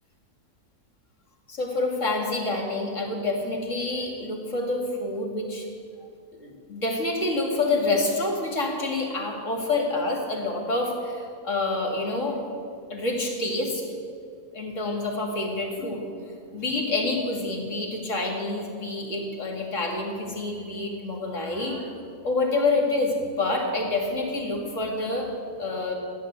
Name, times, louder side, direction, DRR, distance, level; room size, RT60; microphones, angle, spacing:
voice 1, 1.5-5.7 6.4-12.4 12.9-13.8 14.5-16.0 16.5-22.0 22.2-25.3 25.6-25.9, left 2 dB, 50° left, 1 dB, 2.8 m, -27 dB
15.0 x 11.0 x 8.2 m, 2.4 s
omnidirectional pair, 1.6 m